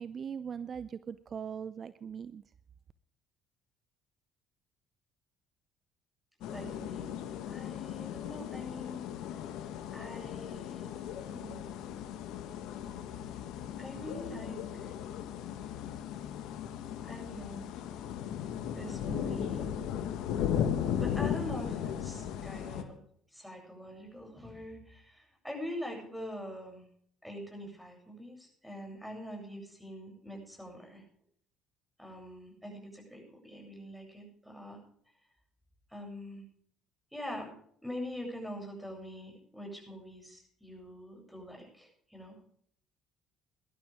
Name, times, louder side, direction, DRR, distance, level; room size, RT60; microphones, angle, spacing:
voice 1, 0.0-2.4, right 7 dB, 45° right, 15 dB, 0.6 m, -40 dB
sound 1, 6.4-22.8, left 9 dB, 70° left, 1.3 m, -37 dB
voice 2, 6.5-9.0 9.9-11.5 13.8-14.9 17.0-17.7 18.7-19.6 21.0-23.0 23.3-26.9 27.2-31.0 32.0-34.8 35.9-36.4 37.1-37.5 37.8-42.4, left 1 dB, ahead, 1 dB, 7.7 m, -44 dB
19.0 x 12.0 x 3.6 m, 0.63 s
hypercardioid pair, 60°, 0 cm